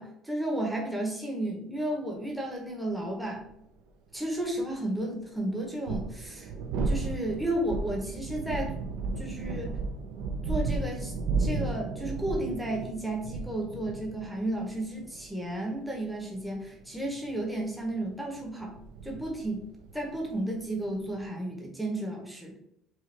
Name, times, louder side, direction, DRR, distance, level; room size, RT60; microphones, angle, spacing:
voice 1, 0.0-3.5 4.1-6.5 6.8-8.7 9.2-9.7 10.4-11.1 11.4-18.8 19.0-19.7 19.9-22.6, right 1 dB, 5° right, -1 dB, 0.8 m, -33 dB
sound 1, 3.5-3.6 5.6-21.2, right 3 dB, 75° right, 0.5 m, -34 dB
5.4 x 2.3 x 3.2 m, 0.80 s
cardioid pair, 150°, 0 cm